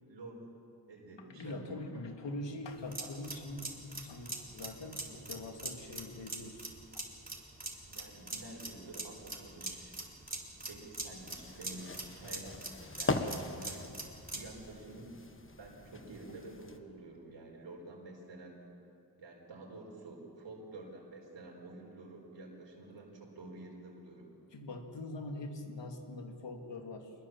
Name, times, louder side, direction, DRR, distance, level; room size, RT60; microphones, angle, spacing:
voice 1, 0.1-0.4 0.9-1.8 7.9-9.9 10.7-12.6 12.9-13.7 14.3-15.1 15.6-18.6 19.2-24.3, right 2 dB, 90° right, -1 dB, 4.7 m, -49 dB
voice 2, 1.1-6.6 6.9-7.0 24.5-27.1, left 2 dB, 85° left, 4 dB, 2.5 m, -43 dB
sound 1, 2.7-14.5, right 2 dB, 20° right, 3.7 m, -43 dB
sound 2, 11.2-16.8, left 2 dB, 30° left, 1.5 m, -40 dB
25.5 x 21.0 x 7.3 m, 2.7 s
wide cardioid pair, 85°, 42 cm